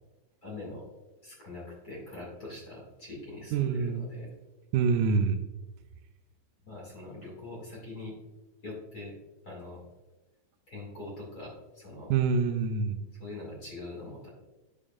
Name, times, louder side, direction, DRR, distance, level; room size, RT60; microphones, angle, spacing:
voice 1, 0.4-0.8 1.2-4.3 6.6-8.2 8.6-9.1 9.4-9.8 10.7-12.1 13.2-14.3, left 2 dB, 30° left, -5 dB, 2.6 m, -43 dB
voice 2, 3.5-4.1 4.7-5.4 12.1-13.0, right 5 dB, 80° right, 7 dB, 2.0 m, -26 dB
9.0 x 7.0 x 2.4 m, 1.1 s
omnidirectional pair, 3.6 m